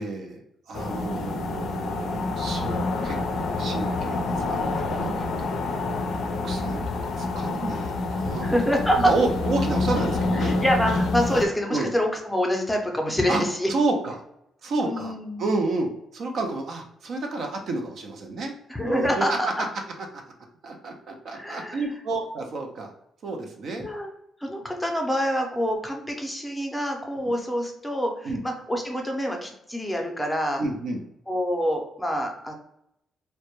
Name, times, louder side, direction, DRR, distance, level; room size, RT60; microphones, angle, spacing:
voice 1, 0.0-5.6 6.0-10.6 11.7-11.9 13.3-13.4 13.7-14.2 14.6-18.5 18.8-19.4 20.1-20.2 20.6-22.9 23.2-23.9 28.2-28.4 30.6-31.0, right 3 dB, 65° right, 2 dB, 0.4 m, -30 dB
sound 1, 0.7-11.5, left 3 dB, 70° left, 0.3 m, -27 dB
voice 2, 8.4-9.1 10.3-13.7 14.8-15.5 18.7-19.5 21.3-21.8 23.8-24.1 24.4-30.6 31.3-32.5, equal, 5° left, 1 dB, 0.5 m, -26 dB
2.1 x 2.0 x 2.9 m, 0.78 s
cardioid pair, 90°, 0 cm